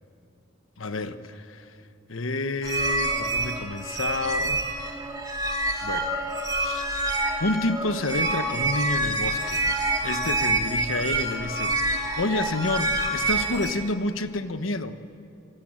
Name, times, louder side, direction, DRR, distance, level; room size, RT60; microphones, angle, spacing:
voice 1, 0.8-1.8 2.1-4.7 5.8-6.1 6.6-6.9 7.4-9.6 10.0-15.0, left 2 dB, 90° left, 10 dB, 1.2 m, -29 dB
sound 1, 2.6-13.7, right 2 dB, 20° right, 2.5 m, -27 dB
27.0 x 19.0 x 9.0 m, 2.5 s
head